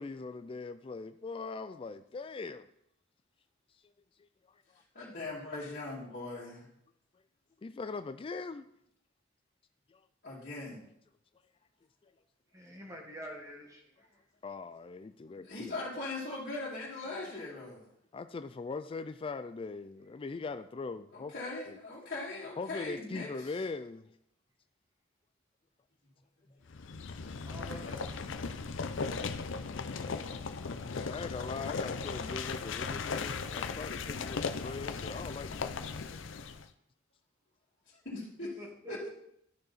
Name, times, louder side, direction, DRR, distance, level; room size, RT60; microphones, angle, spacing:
voice 1, 0.0-2.7 7.6-8.7 9.9-10.0 14.4-15.8 18.1-21.3 21.7-21.8 22.6-24.1 30.9-36.2, left 4 dB, 25° left, 0.3 m, -41 dB
voice 2, 4.9-6.7 10.2-10.9 15.4-17.9 21.1-23.5 26.4-27.2 38.0-38.5 38.9-39.1, left 2 dB, 50° left, 2.5 m, -40 dB
voice 3, 12.5-13.8 27.5-29.1 38.6-39.1, equal, 15° right, 1.7 m, -47 dB
sound 1, 26.7-36.7, left 4 dB, 70° left, 0.6 m, -37 dB
12.0 x 6.7 x 4.1 m
head